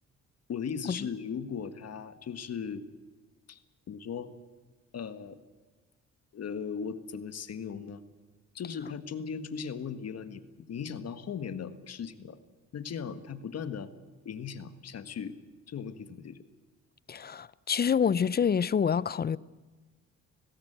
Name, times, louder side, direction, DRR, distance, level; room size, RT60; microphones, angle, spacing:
voice 1, 0.5-2.8 3.5-3.6 3.9-4.3 4.9-5.4 6.3-8.0 8.5-12.4 12.7-13.9 14.2-15.4 15.7-16.4, left 6 dB, 55° left, 1.7 m, -38 dB
voice 2, 17.1-19.4, left 7 dB, 30° left, 0.5 m, -27 dB
19.0 x 17.0 x 9.1 m
cardioid pair, 90°, 30 cm